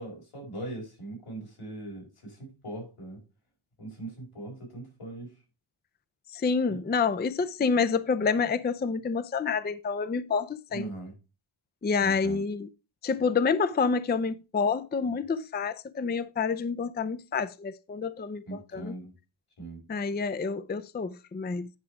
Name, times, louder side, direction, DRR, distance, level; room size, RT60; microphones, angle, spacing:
voice 1, 0.0-3.2 3.8-5.3 6.7-6.8 10.7-11.1 12.0-12.4 18.5-19.1 19.6-19.8, right 2 dB, 85° left, 4.9 m, -40 dB
voice 2, 6.3-10.9 11.8-12.7 13.0-18.9 19.9-21.7, left 5 dB, 20° left, 0.4 m, -28 dB
9.6 x 4.9 x 4.6 m
wide cardioid pair, 70°, 49 cm